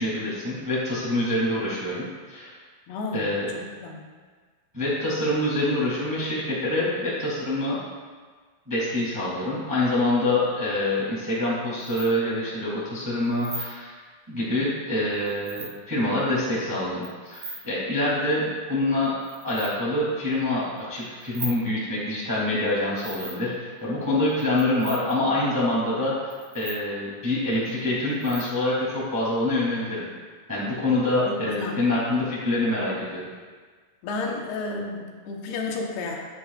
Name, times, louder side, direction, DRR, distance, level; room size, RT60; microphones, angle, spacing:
voice 1, 0.0-2.6 3.1-3.5 4.7-7.8 8.6-13.9 14.3-19.1 19.4-30.1 30.5-33.3, left 1 dB, 5° right, -7 dB, 1.7 m, -26 dB
voice 2, 2.9-3.2 3.5-4.1 31.3-31.9 34.0-36.2, left 3 dB, 80° left, 0 dB, 3.1 m, -32 dB
sound 1, 11.8-12.1 13.3-13.7 15.1-15.7 17.0-17.6 19.0-19.7 20.8-21.6 23.0-23.5 24.3-25.1 26.3-26.8 27.5-27.7 28.1-28.5, right 3 dB, 50° right, 2.7 m, -38 dB
11.5 x 9.4 x 2.4 m, 1.5 s
omnidirectional pair, 4.6 m